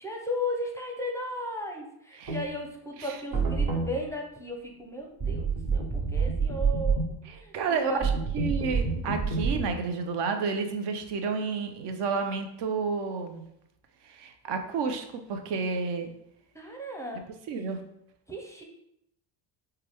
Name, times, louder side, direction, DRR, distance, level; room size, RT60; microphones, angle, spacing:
voice 1, 0.0-7.0 7.2-8.0 16.5-17.3 18.3-18.6, left 1 dB, 5° left, 1 dB, 0.6 m, -36 dB
sound 1, 2.3-2.4 3.3-3.9 5.2-7.1 8.0-9.6, right 5 dB, 40° right, 1.3 m, -27 dB
voice 2, 7.3-13.5 14.0-16.1 17.5-17.8, right 5 dB, 60° right, 6 dB, 0.7 m, -31 dB
4.7 x 2.2 x 3.4 m, 0.79 s
cardioid pair, 100°, 46 cm